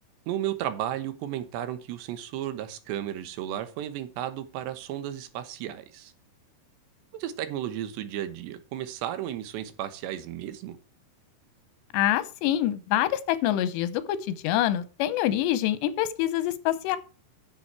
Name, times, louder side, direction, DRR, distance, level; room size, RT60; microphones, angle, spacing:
voice 1, 0.3-6.1 7.1-10.8, right 11 dB, 80° right, 11 dB, 3.3 m, -34 dB
voice 2, 11.9-17.0, left 12 dB, 85° left, 15 dB, 3.1 m, -26 dB
10.5 x 7.1 x 4.7 m, 0.36 s
omnidirectional pair, 4.9 m